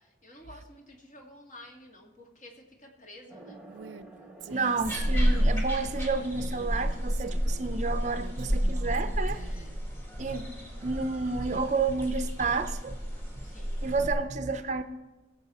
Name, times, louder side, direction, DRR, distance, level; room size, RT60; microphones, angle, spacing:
voice 1, 0.0-3.6 9.3-9.7 13.4-13.9, left 1 dB, 40° left, 0 dB, 2.0 m, -51 dB
sound 1, 3.3-11.2, right 2 dB, 5° right, 1.4 m, -53 dB
Female speech woman speaking, 3.7-4.1 4.4-5.7 6.6-7.7 8.2-9.8, right 4 dB, 90° right, 0.5 m, -46 dB
voice 2, 4.5-9.4 10.2-10.5 10.8-13.0 13.4-13.5 13.8-14.8, right 4 dB, 40° right, 10 dB, 0.5 m, -30 dB
sound 2, 4.8-14.1, equal, 15° left, 2.0 m, -30 dB
20.5 x 7.6 x 4.2 m, 1.1 s
head